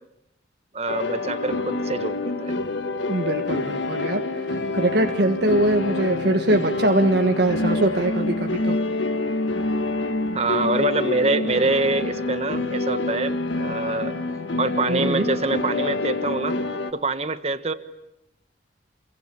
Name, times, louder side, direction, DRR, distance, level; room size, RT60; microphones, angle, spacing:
voice 1, 0.7-2.5 10.3-14.1 14.6-16.6 16.9-17.7, right 3 dB, 35° right, 11 dB, 1.3 m, -25 dB
sound 1, 0.9-16.9, left 2 dB, 90° left, 1.8 m, -27 dB
voice 2, 3.1-8.8 14.9-15.3, right 1 dB, 65° right, 4 dB, 1.5 m, -22 dB
27.5 x 23.0 x 8.4 m, 0.85 s
head